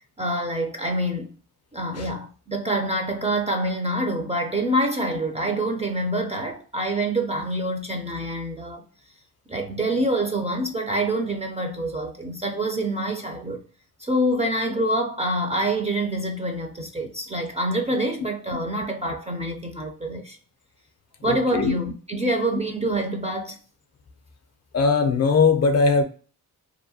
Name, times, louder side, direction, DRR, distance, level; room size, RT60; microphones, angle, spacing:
voice 1, 0.2-1.3 1.7-8.8 9.5-13.6 14.0-20.4 21.2-23.6, right 1 dB, 20° right, 0.4 m, -26 dB
voice 2, 21.2-21.8 24.7-26.0, left 4 dB, 40° left, 0.5 m, -20 dB
2.7 x 2.1 x 2.7 m
cardioid pair, 80°, 38 cm